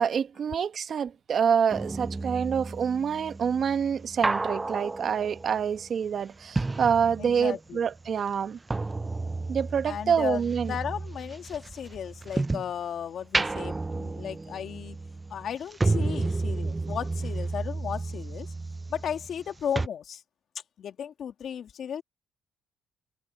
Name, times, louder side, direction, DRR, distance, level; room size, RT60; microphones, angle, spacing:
voice 1, 0.0-8.6 9.5-10.7, right 7 dB, 55° right, 1.5 m, -27 dB
sound 1, 1.7-7.7 8.0-12.8 13.2-19.5 19.8-19.9, right 3 dB, 20° right, 0.5 m, -32 dB
voice 2, 7.2-7.8 9.8-15.0 15.3-18.5 18.9-20.2 20.8-22.0, left 8 dB, 65° left, 2.1 m, -35 dB
cardioid pair, 90°, 0 cm